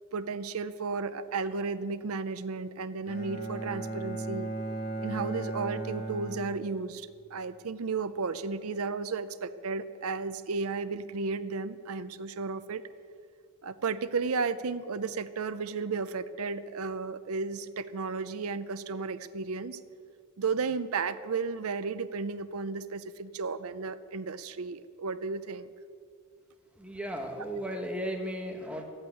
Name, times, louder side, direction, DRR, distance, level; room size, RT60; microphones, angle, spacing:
voice 1, 0.1-4.5 5.0-12.8 13.6-19.8 20.4-25.7, right 4 dB, 80° right, 12 dB, 0.6 m, -33 dB
Bowed string instrument, 3.1-7.1, right 2 dB, 45° left, 2.0 m, -36 dB
voice 2, 26.8-28.8, equal, 5° right, 2 dB, 1.4 m, -35 dB
13.5 x 8.8 x 9.7 m, 2.2 s
head